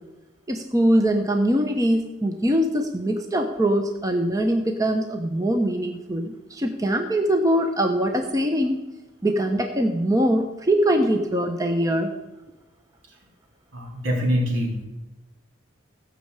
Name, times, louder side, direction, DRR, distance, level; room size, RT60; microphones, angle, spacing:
voice 1, 0.5-8.9 9.2-12.1, right 1 dB, 15° right, 4 dB, 0.8 m, -22 dB
voice 2, 13.7-14.9, equal, 70° right, -1 dB, 3.5 m, -25 dB
15.0 x 6.5 x 8.1 m, 1.1 s
head